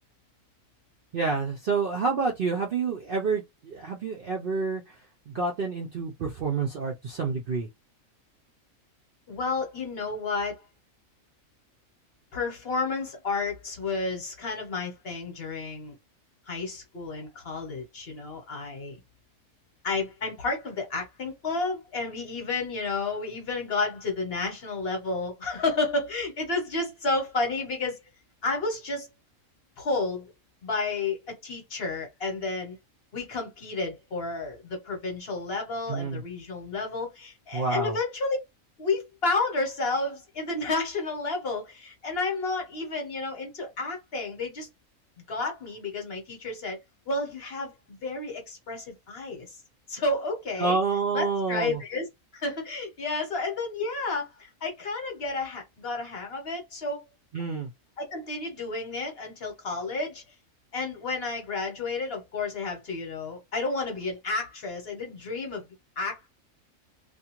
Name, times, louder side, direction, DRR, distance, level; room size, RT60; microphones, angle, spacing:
voice 1, 1.1-5.0 5.3-7.7 35.9-36.2 37.5-38.0 50.6-51.8 57.3-57.7, right 4 dB, 60° right, 0.6 m, -28 dB
voice 2, 9.3-10.6 12.3-16.0 16.5-19.0 19.8-28.0 28.4-29.1 29.8-30.3 30.6-32.8 33.1-38.4 38.8-44.7 45.3-46.8 47.1-49.6 49.9-50.8 51.1-52.1 52.3-57.0 58.0-60.2 60.7-65.6 66.0-66.3, left 3 dB, 50° left, 1.1 m, -31 dB
2.4 x 2.4 x 2.9 m
omnidirectional pair, 1.4 m